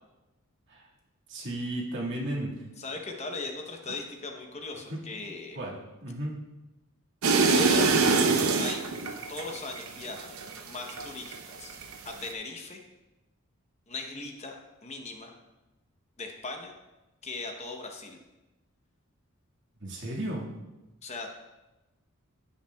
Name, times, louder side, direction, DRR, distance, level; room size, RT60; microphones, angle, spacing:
voice 1, 1.3-2.6 3.9-4.0 4.9-5.0 5.5-6.4 19.8-20.5, right 1 dB, 55° right, -4 dB, 1.8 m, -34 dB
voice 2, 2.8-5.6 7.5-7.9 8.6-9.0 9.3-10.4 10.6-11.8 12.0-12.8 13.9-14.6 14.8-15.4 16.2-16.7 17.2-18.2 21.0-21.3, left 3 dB, 30° left, 3 dB, 0.8 m, -38 dB
sound 1, 7.2-11.4 11.7-12.3, right 4 dB, 75° right, 0.7 m, -24 dB
16.0 x 5.7 x 2.3 m, 1.0 s
head